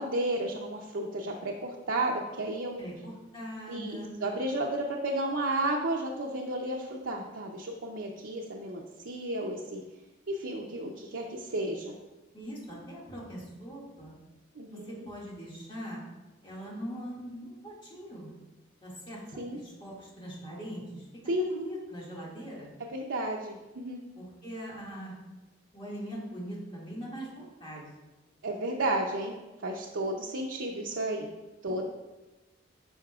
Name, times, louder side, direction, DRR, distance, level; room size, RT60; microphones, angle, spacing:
voice 1, 0.0-2.8 3.7-9.8 10.3-11.9 14.5-15.1 19.4-19.6 21.3-21.4 22.9-24.0 28.4-29.3 29.6-31.3 31.6-31.9, right 1 dB, 85° right, -2 dB, 0.6 m, -32 dB
voice 2, 2.8-4.2 12.3-14.1 14.7-16.0 16.4-18.3 18.8-19.2 19.5-21.1 21.4-22.7 24.2-25.1 25.7-27.9 31.7-31.9, equal, 25° left, -6 dB, 2.0 m, -41 dB
9.8 x 5.6 x 2.4 m, 1.1 s
head